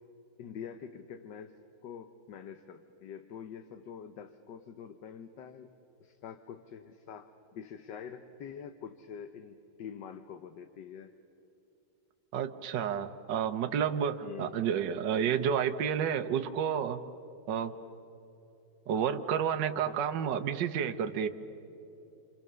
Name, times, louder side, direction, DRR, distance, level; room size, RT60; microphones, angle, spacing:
voice 1, 0.4-1.6 1.8-5.7 6.0-11.1 14.2-14.6 19.8-20.0, left 7 dB, 70° left, 9 dB, 1.5 m, -45 dB
voice 2, 12.3-17.0 17.5-17.7 18.9-21.3, right 8 dB, 70° right, 8 dB, 1.6 m, -30 dB
29.5 x 27.0 x 6.8 m, 2.9 s
omnidirectional pair, 2.1 m